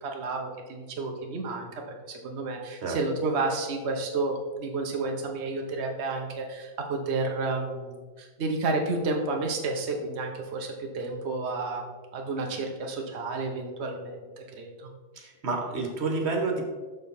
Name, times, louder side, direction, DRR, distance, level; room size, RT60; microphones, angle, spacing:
voice 1, 0.0-14.9, right 3 dB, 70° right, 2 dB, 0.6 m, -31 dB
voice 2, 15.1-16.6, right 3 dB, 40° right, 1 dB, 1.3 m, -29 dB
6.7 x 6.4 x 4.1 m, 1.4 s
omnidirectional pair, 2.2 m